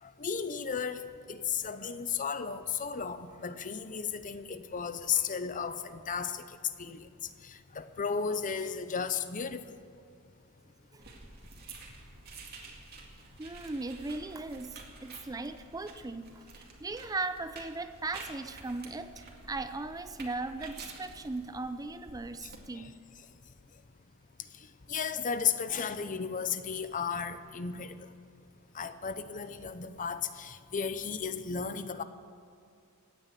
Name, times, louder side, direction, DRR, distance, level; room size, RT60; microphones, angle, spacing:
voice 1, 0.0-9.8 22.4-22.9 24.6-28.1 28.7-32.0, left 6 dB, 35° left, 12 dB, 0.7 m, -34 dB
sound 1, 11.0-22.6, right 3 dB, 45° right, 2.2 m, -50 dB
voice 2, 13.4-22.9, right 3 dB, 15° right, 11 dB, 0.5 m, -38 dB
17.0 x 9.1 x 8.3 m, 2.4 s
head